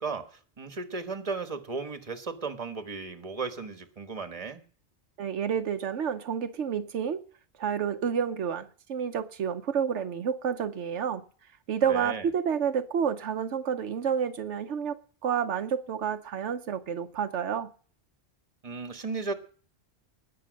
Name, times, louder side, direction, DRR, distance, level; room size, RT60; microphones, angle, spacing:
voice 1, 0.0-4.6 11.9-12.3 18.6-19.3, right 4 dB, 30° right, 1.4 m, -35 dB
voice 2, 5.2-7.2 7.6-11.2 11.7-15.0 15.2-17.7, right 7 dB, 85° right, 1.1 m, -29 dB
19.5 x 6.8 x 6.4 m
omnidirectional pair, 1.2 m